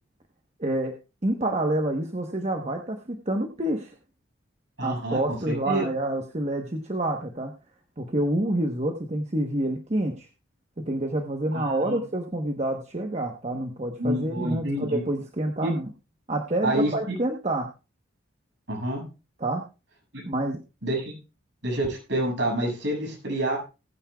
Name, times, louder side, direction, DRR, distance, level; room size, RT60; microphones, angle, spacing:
voice 1, 0.6-0.9 1.2-3.9 4.8-7.5 8.0-10.3 10.8-15.9 16.3-17.7 19.4-19.6 20.2-20.6, right 1 dB, 35° right, 3 dB, 1.1 m, -28 dB
voice 2, 4.8-5.9 11.5-12.0 14.0-15.0 15.6-15.7 16.6-17.1 18.7-19.0 20.8-21.1 21.6-23.6, right 1 dB, 65° right, 0 dB, 6.7 m, -28 dB
20.0 x 9.7 x 2.3 m, 0.31 s
head